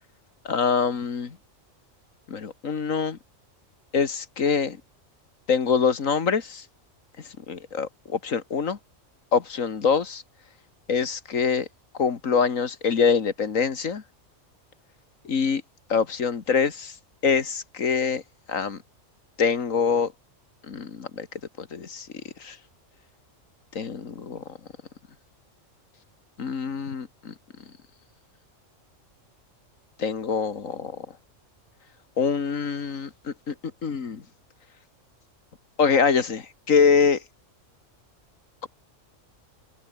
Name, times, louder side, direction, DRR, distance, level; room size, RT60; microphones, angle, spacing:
voice 1, 0.5-1.4 2.3-3.2 3.9-4.8 5.5-6.7 7.4-8.8 9.3-10.2 10.9-11.7 12.0-14.0 15.2-15.6 15.9-17.0 17.2-18.2 18.5-18.8 19.4-20.1 20.6-21.3 21.6-22.1 22.4-22.6 23.7-24.4 26.4-27.3 30.0-31.1 32.2-33.5 33.8-34.2 35.8-37.2, left 6 dB, 85° left, 2.2 m, -24 dB
omnidirectional pair, 1.3 m